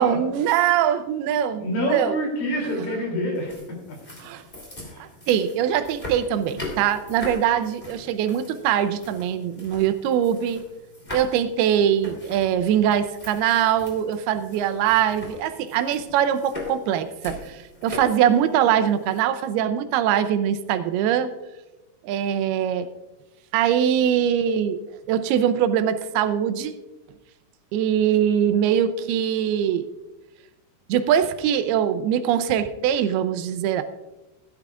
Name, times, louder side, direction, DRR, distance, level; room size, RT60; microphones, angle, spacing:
voice 1, 0.0-2.2 4.2-4.4 5.0-10.6 11.1-21.3 22.0-22.9 23.5-24.8 25.1-26.7 27.7-29.9 30.9-33.8, right 9 dB, 85° right, 10 dB, 2.6 m, -22 dB
voice 2, 1.6-4.0 4.8-5.1, equal, 65° left, 0 dB, 4.6 m, -27 dB
sound 1, 3.3-19.2, left 2 dB, 15° left, 2.5 m, -40 dB
16.0 x 12.0 x 2.4 m, 1.0 s
omnidirectional pair, 4.5 m